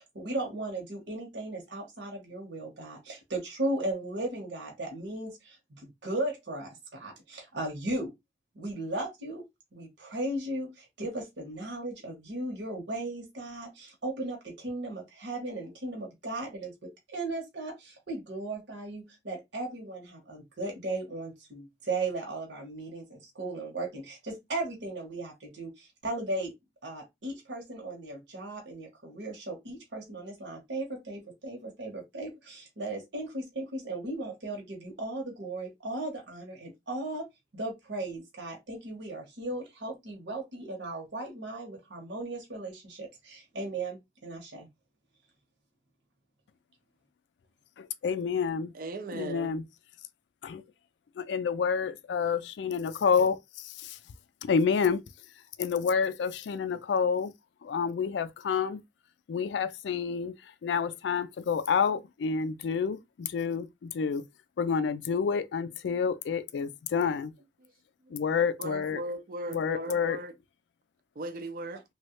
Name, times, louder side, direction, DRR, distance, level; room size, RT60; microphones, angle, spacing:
voice 1, 0.0-8.1 8.5-9.4 9.7-26.5 26.8-37.2 37.5-44.7, right 2 dB, 75° right, 1.0 m, -36 dB
voice 2, 47.8-48.7 49.1-49.6 50.4-50.6 51.2-54.0 54.4-55.0 55.6-57.3 57.6-58.8 59.3-60.3 60.6-64.2 64.6-67.3 68.1-69.0 69.5-70.2, left 6 dB, 75° left, 0.3 m, -29 dB
voice 3, 48.7-49.6 68.1-68.2 68.6-70.3 71.2-71.8, right 1 dB, 50° right, 0.4 m, -38 dB
3.1 x 2.3 x 2.9 m
head